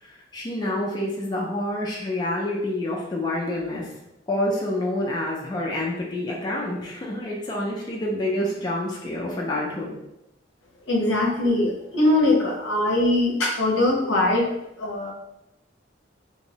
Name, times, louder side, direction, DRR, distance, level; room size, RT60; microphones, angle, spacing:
voice 1, 0.0-3.9 4.3-9.9, left 1 dB, 20° left, -3 dB, 0.3 m, -28 dB
voice 2, 10.9-14.5 14.8-15.1, left 2 dB, 75° left, -1 dB, 0.6 m, -21 dB
2.6 x 2.0 x 2.7 m, 0.88 s
head